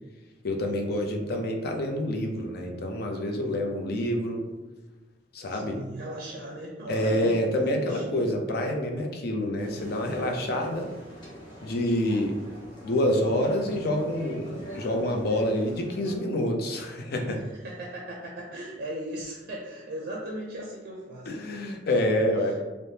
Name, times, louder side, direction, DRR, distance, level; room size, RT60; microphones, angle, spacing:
voice 1, 0.4-4.4 5.3-5.8 6.9-10.9 11.6-12.3 12.8-17.4 21.3-22.6, left 1 dB, 60° left, 2 dB, 0.4 m, -27 dB
voice 2, 5.5-8.2 17.3-21.3 21.9-22.0 22.3-22.6, right 1 dB, 55° right, -2 dB, 0.4 m, -38 dB
sound 1, 9.6-16.2, equal, 25° left, 0.9 m, -45 dB
3.3 x 2.1 x 2.7 m, 1.2 s
head